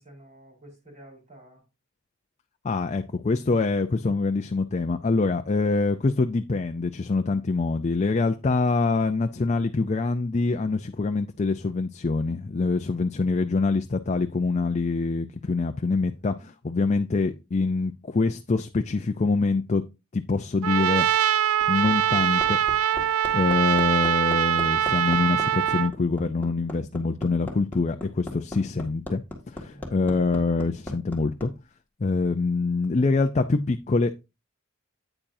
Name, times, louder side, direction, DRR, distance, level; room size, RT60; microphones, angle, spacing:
voice 1, 0.0-1.6 13.2-13.3 16.3-16.5 29.6-29.9, right 1 dB, 35° right, 4.9 m, -50 dB
voice 2, 2.6-19.8 20.1-21.1 21.7-22.6 23.3-29.2 29.5-31.5 32.0-34.1, left 3 dB, 35° left, 0.5 m, -25 dB
Trumpet, 20.6-25.9, right 10 dB, 85° right, 0.4 m, -23 dB
Hammer, 21.4-31.5 32.8-32.9, left 1 dB, 10° left, 1.8 m, -38 dB
8.9 x 8.6 x 2.7 m
head